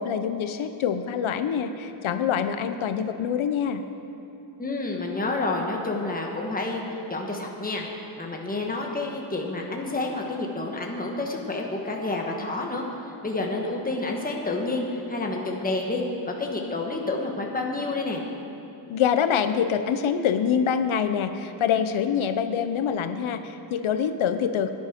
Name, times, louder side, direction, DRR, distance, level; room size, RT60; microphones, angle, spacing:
voice 1, 0.0-3.8 18.9-24.7, left 7 dB, 85° left, 9 dB, 0.8 m, -25 dB
voice 2, 4.6-7.8 8.2-12.8 13.2-18.2, left 2 dB, 20° left, 0 dB, 1.3 m, -29 dB
16.5 x 10.0 x 5.1 m, 2.9 s
wide cardioid pair, 180°, 47 cm